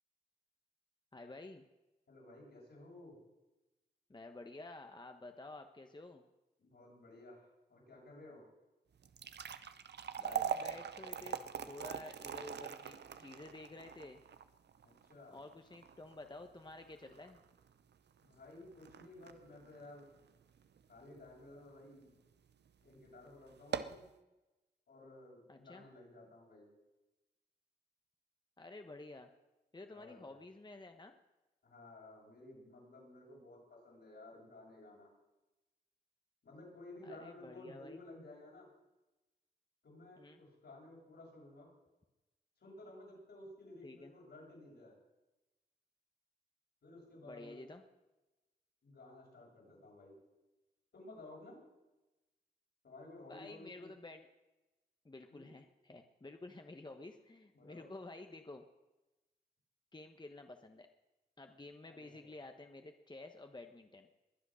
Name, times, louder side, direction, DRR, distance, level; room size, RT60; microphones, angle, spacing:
voice 1, 1.1-1.7 4.1-6.2 10.2-14.2 15.3-17.4 25.5-25.8 28.6-29.3 29.7-31.1 37.0-38.0 40.2-40.4 43.8-44.1 47.2-47.8 53.3-54.3 55.0-58.6 59.9-60.9 61.4-64.1, left 2 dB, 25° left, 5 dB, 1.2 m, -51 dB
voice 2, 2.1-3.2 6.6-8.4 14.8-15.4 18.2-20.1 20.9-22.2 22.8-24.0 24.9-26.7 29.9-30.4 31.6-35.1 36.4-38.7 39.8-41.7 42.6-45.0 46.8-47.7 48.8-50.2 50.9-51.6 52.8-53.9 55.3-55.5 57.5-57.9 61.8-62.3, left 2 dB, 75° left, -4 dB, 7.2 m, -55 dB
sound 1, 8.9-21.2 21.7-21.8 22.5-22.7 23.0-23.1 23.5-24.1, right 7 dB, 75° right, 0.7 m, -43 dB
21.5 x 8.1 x 6.4 m, 1.0 s
cardioid pair, 55°, 18 cm